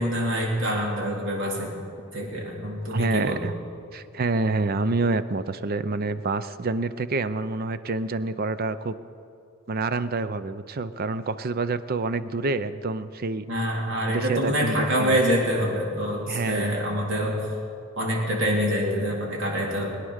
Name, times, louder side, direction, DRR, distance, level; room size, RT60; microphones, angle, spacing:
voice 1, 0.0-1.7 2.1-3.4 13.5-17.4 18.0-19.9, equal, 65° right, -2 dB, 3.6 m, -25 dB
voice 2, 2.9-3.5 3.9-8.9 9.7-13.5 14.1-15.2 16.3-16.8, right 3 dB, 45° right, 13 dB, 0.5 m, -27 dB
21.5 x 9.7 x 6.4 m, 2.5 s
head